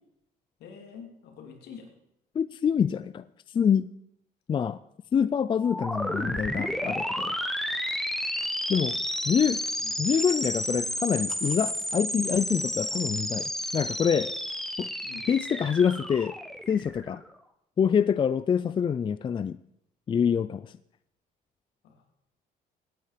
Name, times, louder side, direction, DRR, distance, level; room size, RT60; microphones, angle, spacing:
voice 1, 0.6-1.9 9.8-10.1 15.0-15.3 21.8-22.0, left 6 dB, 75° left, 3 dB, 3.0 m, -46 dB
voice 2, 2.4-3.2 3.5-3.9 4.5-4.8 5.1-7.3 8.7-9.0 9.3-9.6 10.0-14.3 14.8-14.9 15.3-16.3 16.7-17.2 17.8-19.6 20.1-20.7, left 7 dB, 30° left, 15 dB, 0.4 m, -26 dB
sound 1, 5.6-17.3, equal, ahead, 1.0 m, -31 dB
16.5 x 9.4 x 5.1 m, 0.79 s
cardioid pair, 110°, 17 cm